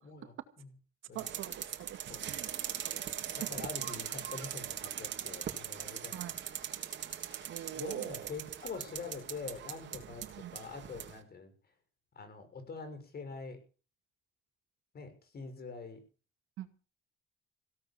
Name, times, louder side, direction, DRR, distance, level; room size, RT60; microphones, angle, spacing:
voice 1, 0.0-0.7 1.1-1.3 2.1-2.3 3.3-6.3 7.7-10.2 10.5-11.5 12.2-13.6 14.9-16.0, left 4 dB, 50° left, 9 dB, 6.0 m, -45 dB
voice 2, 1.1-2.5 2.8-3.7 6.1-6.4 7.5-8.3 10.2-10.6 16.6-16.7, right 12 dB, 85° right, 8 dB, 2.3 m, -44 dB
sound 1, 1.2-11.2, right 9 dB, 65° right, 3.1 m, -41 dB
17.0 x 10.0 x 7.1 m, 0.38 s
cardioid pair, 90°, 20 cm